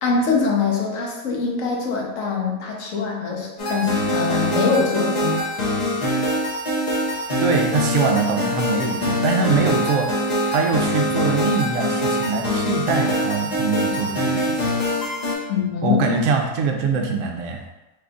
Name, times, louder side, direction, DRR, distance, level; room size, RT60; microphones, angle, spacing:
voice 1, 0.0-5.5 15.5-16.1, left 5 dB, 60° left, -1 dB, 0.9 m, -23 dB
sound 1, 3.6-15.4, equal, 85° left, 0.3 m, -23 dB
voice 2, 7.4-10.1 10.5-14.6 15.8-17.6, right 4 dB, 70° right, 2 dB, 0.8 m, -23 dB
3.3 x 2.3 x 3.7 m, 1.0 s
omnidirectional pair, 1.8 m